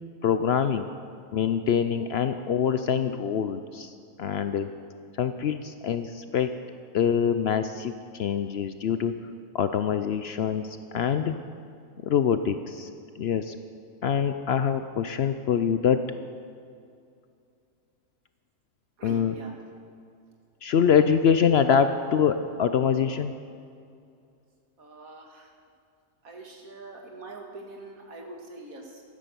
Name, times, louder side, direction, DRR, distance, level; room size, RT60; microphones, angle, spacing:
voice 1, 0.2-0.9 1.3-4.7 5.2-6.5 6.9-9.1 9.5-10.7 10.9-11.4 12.0-12.9 13.2-13.5 14.0-16.0 19.0-19.3 20.6-23.3, left 7 dB, 65° left, 10 dB, 0.7 m, -24 dB
voice 2, 19.0-19.5 24.8-25.5 26.2-29.0, right 2 dB, 80° right, 1 dB, 2.2 m, -44 dB
13.0 x 9.9 x 6.9 m, 2.4 s
omnidirectional pair, 1.4 m